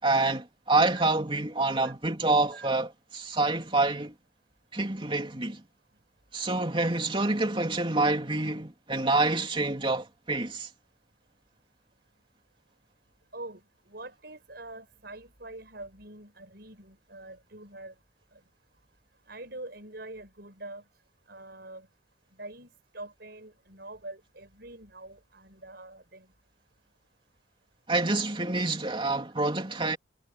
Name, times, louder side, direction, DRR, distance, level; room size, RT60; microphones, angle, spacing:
voice 1, 0.0-4.1 4.7-5.6 6.3-10.7 27.9-30.0, right 2 dB, 25° right, 3.4 m, -27 dB
voice 2, 13.9-17.9 18.3-18.4 19.3-20.8 21.3-21.9 22.4-26.3, right 2 dB, 55° right, 6.8 m, -44 dB
head